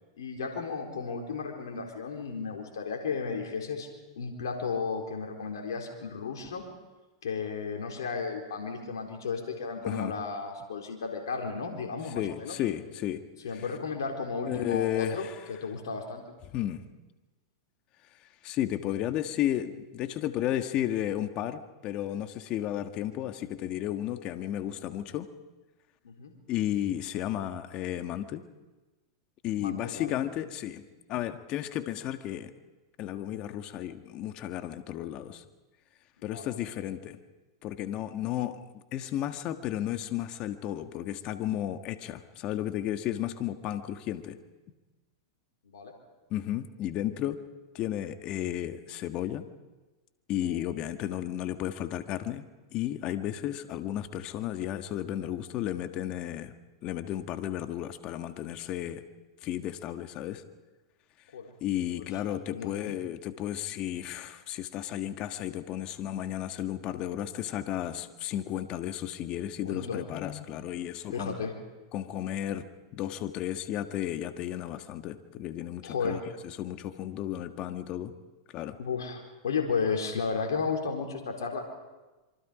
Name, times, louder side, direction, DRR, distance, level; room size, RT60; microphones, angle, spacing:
voice 1, 0.2-3.9 4.2-6.6 7.2-12.5 13.4-16.2 26.0-26.3 29.6-30.1 36.2-36.5 45.6-45.9 50.4-50.6 61.3-61.5 61.9-62.1 62.5-62.9 69.6-70.0 71.1-71.5 75.8-76.2 78.8-81.6, left 5 dB, 80° left, 1 dB, 4.1 m, -34 dB
voice 2, 9.8-10.1 12.0-13.2 13.5-13.6 14.4-15.3 16.5-16.8 18.4-25.3 26.5-28.4 29.4-30.8 31.1-32.5 33.0-35.4 36.2-37.2 37.6-44.4 46.3-47.4 47.7-49.5 50.3-52.4 52.7-56.5 56.8-59.0 59.4-60.4 61.6-71.4 71.9-72.7 72.9-78.1 78.5-78.8, left 12 dB, 40° left, 8 dB, 1.6 m, -33 dB
26.0 x 24.5 x 5.2 m, 1.2 s
hypercardioid pair, 110°, 2 cm